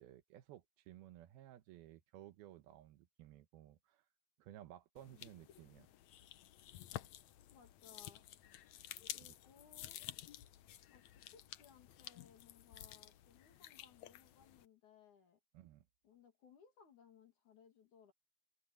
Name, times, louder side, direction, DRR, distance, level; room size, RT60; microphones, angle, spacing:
voice 1, 0.0-4.0 4.4-5.9 15.5-15.9, right 13 dB, 80° right, 2.8 m, -57 dB
sound 1, 5.0-14.7, left 13 dB, 90° left, 1.5 m, -52 dB
voice 2, 7.5-8.3 9.1-10.0 10.9-15.4 16.0-18.1, left 7 dB, 55° left, 3.6 m, -64 dB
omnidirectional pair, 4.5 m